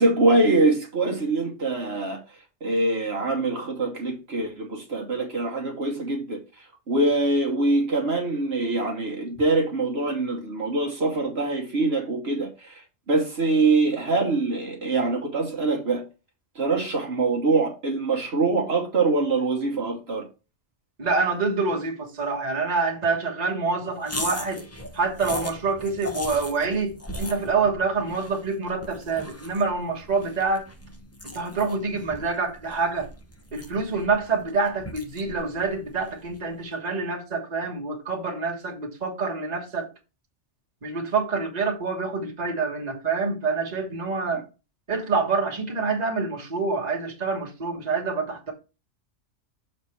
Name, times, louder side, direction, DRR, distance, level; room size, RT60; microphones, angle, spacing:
voice 1, 0.0-2.2 2.6-12.8 13.1-16.0 16.5-20.2, right 3 dB, 60° right, 1.5 m, -24 dB
voice 2, 21.0-24.6 24.9-30.6 31.3-33.1 33.5-39.9 40.8-44.4 44.9-48.5, right 4 dB, 35° right, 1.4 m, -26 dB
sound 1, 24.0-36.5, left 1 dB, 15° left, 0.8 m, -39 dB
6.6 x 3.3 x 5.8 m
omnidirectional pair, 1.2 m